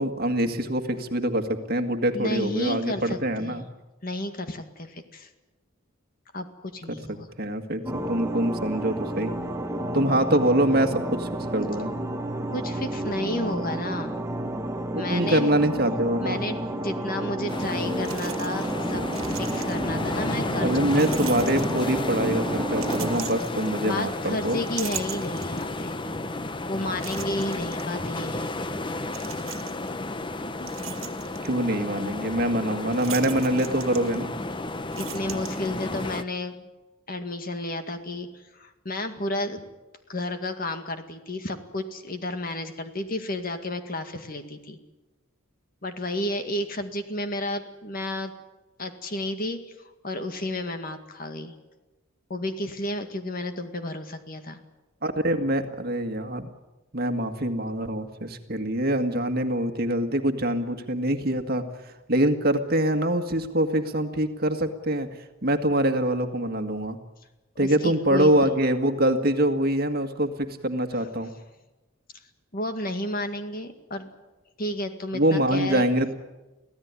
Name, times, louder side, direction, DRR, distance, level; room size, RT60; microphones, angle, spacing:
voice 1, 0.0-3.6 6.9-7.0 7.4-9.3 9.9-11.9 14.9-16.4 20.6-24.6 31.4-34.3 55.0-56.5 56.9-61.6 62.1-65.1 65.4-67.0 67.6-71.3 75.1-76.1, right 1 dB, 45° right, 7 dB, 1.9 m, -24 dB
voice 2, 2.1-3.7 4.0-5.3 6.3-7.3 12.5-14.2 15.0-15.5 16.2-21.1 23.8-26.0 26.7-28.5 35.0-36.7 37.1-39.7 40.1-44.8 45.8-48.3 48.8-51.5 52.3-54.6 67.6-68.3 71.0-71.1 72.5-74.1 74.6-75.8, left 1 dB, 45° left, 7 dB, 2.0 m, -32 dB
sound 1, 7.9-23.2, right 1 dB, 15° right, 1.2 m, -31 dB
sound 2, 17.5-36.2, left 2 dB, 25° left, 0.8 m, -32 dB
sound 3, 17.5-17.6 18.0-18.8 19.0-20.0 20.9-22.1 22.7-24.1 24.5-25.8 26.3-26.4 27.0-27.8 29.1-29.9 30.4-31.5 32.9-34.5 34.8-36.0, right 12 dB, 75° right, 1.7 m, -40 dB
24.5 x 16.5 x 9.7 m, 1.1 s
head